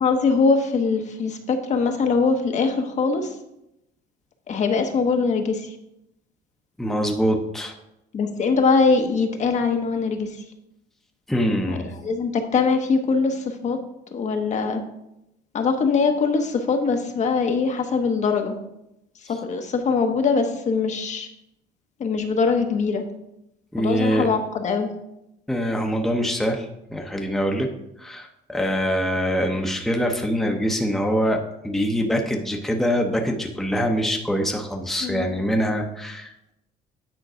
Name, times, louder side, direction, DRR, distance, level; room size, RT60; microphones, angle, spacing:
voice 1, 0.0-3.3 4.5-5.7 8.1-10.4 11.7-11.8 12.0-13.8 14.1-14.8 15.5-18.6 19.3-21.3 22.0-23.0 23.8-24.9 35.0-35.3, left 4 dB, 45° left, 5 dB, 0.9 m, -22 dB
voice 2, 6.8-7.7 11.3-11.9 23.7-24.3 25.5-27.7 28.0-36.5, equal, ahead, 2 dB, 0.8 m, -24 dB
9.1 x 3.8 x 5.0 m, 0.85 s
cardioid pair, 110°, 17 cm